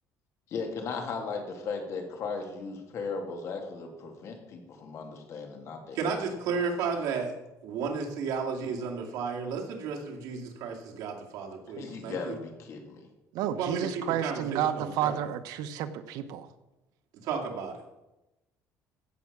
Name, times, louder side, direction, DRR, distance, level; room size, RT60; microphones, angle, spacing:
voice 1, 0.5-6.1 11.8-13.1, left 4 dB, 50° left, 3 dB, 2.4 m, -37 dB
voice 2, 5.9-7.3 7.6-12.4 13.5-15.2 17.2-17.8, right 5 dB, 70° right, -1 dB, 2.5 m, -33 dB
voice 3, 13.3-16.5, right 10 dB, 85° right, 10 dB, 1.0 m, -31 dB
15.5 x 6.0 x 6.6 m, 0.99 s
cardioid pair, 150°, 6 cm